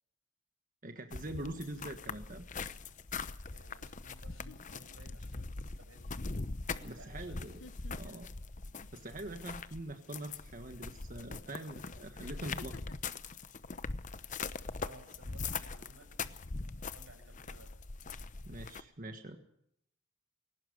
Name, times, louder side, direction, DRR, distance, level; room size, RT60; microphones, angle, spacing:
voice 1, 0.8-2.4 6.8-7.6 7.9-8.3 8.9-12.8 18.4-19.4, right 1 dB, 45° right, 5 dB, 1.5 m, -44 dB
sound 1, 1.1-18.8, left 4 dB, 40° left, 0.9 m, -42 dB
sound 2, 1.4-1.6 3.5-3.6 4.2-5.4 5.8-6.1 7.4-9.3 9.6-9.9 10.9-11.0 12.2-14.5 14.9-15.2, left 3 dB, 85° left, 1.0 m, -56 dB
voice 2, 3.5-6.1 6.7-7.4 7.8-8.2 11.4-12.0 14.7-16.3 16.6-17.7, right 1 dB, 85° right, 7 dB, 5.8 m, -58 dB
21.0 x 18.5 x 6.6 m, 0.73 s
head